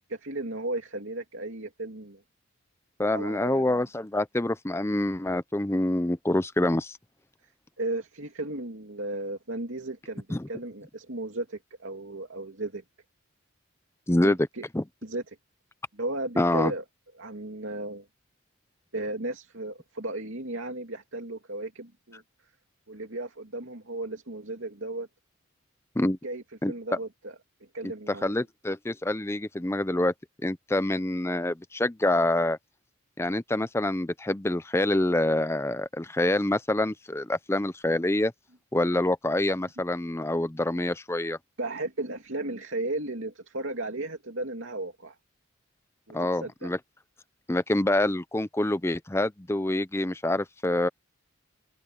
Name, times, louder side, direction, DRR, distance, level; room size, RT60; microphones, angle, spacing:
voice 1, 0.0-2.2 3.1-3.8 7.8-12.8 14.2-14.6 15.0-15.2 15.9-16.8 17.2-18.1 18.9-22.2 22.9-25.1 26.2-27.3 27.7-28.4 41.6-45.2 46.1-46.7, right 2 dB, 65° right, 2.7 m, -35 dB
voice 2, 3.0-7.0 10.3-10.5 14.1-14.4 14.7-14.8 16.4-16.7 26.0-26.2 26.6-26.7 27.8-27.9 28.2-30.1 30.4-32.6 33.2-38.3 38.7-41.4 46.1-46.8 47.5-50.9, left 1 dB, 10° left, 0.6 m, -26 dB
open air
head